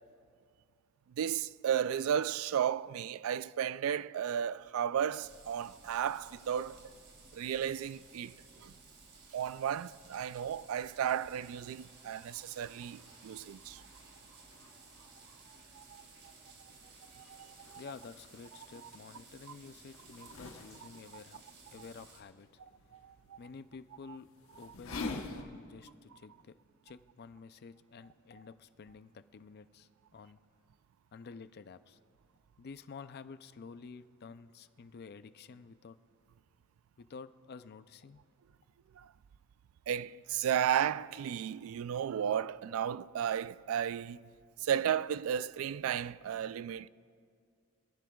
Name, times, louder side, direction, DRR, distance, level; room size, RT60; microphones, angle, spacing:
voice 1, 1.2-6.8 7.3-8.7 9.3-13.8 15.7-16.0 17.2-17.8 18.8-18.9 22.9-23.4 39.0-39.1 39.9-44.2 44.6-46.9, right 9 dB, 75° right, 0.3 m, -34 dB
sound 1, 5.2-22.2, right 3 dB, 55° right, 2.4 m, -57 dB
sound 2, 14.5-25.4, left 3 dB, 70° left, 1.1 m, -48 dB
voice 2, 17.7-21.4 21.7-22.5 23.4-24.3 24.6-26.6 26.8-30.4 31.1-32.0 32.6-36.0 37.0-38.2, left 5 dB, 50° left, 0.4 m, -50 dB
25.0 x 16.5 x 2.3 m
head